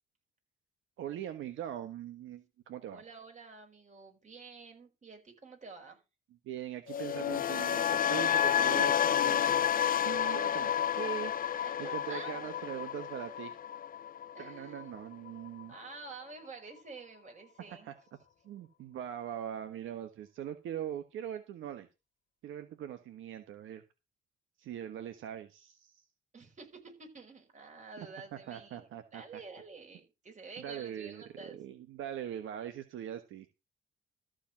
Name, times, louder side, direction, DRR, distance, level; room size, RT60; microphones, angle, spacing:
voice 1, 1.0-3.0 6.4-9.7 10.0-13.6 14.4-15.7 17.7-17.9 18.4-21.9 22.4-23.8 24.6-26.0 28.0-29.4 30.6-33.5, right 10 dB, 80° right, 9 dB, 1.2 m, -41 dB
voice 2, 2.9-6.0 11.6-12.4 14.3-14.9 15.7-17.9 26.3-28.8 29.1-31.6, right 4 dB, 35° right, 3 dB, 5.2 m, -49 dB
sound 1, 6.9-15.0 15.3-15.6, left 9 dB, 45° left, 0.6 m, -30 dB
13.5 x 5.0 x 7.4 m, 0.28 s
cardioid pair, 90°, 20 cm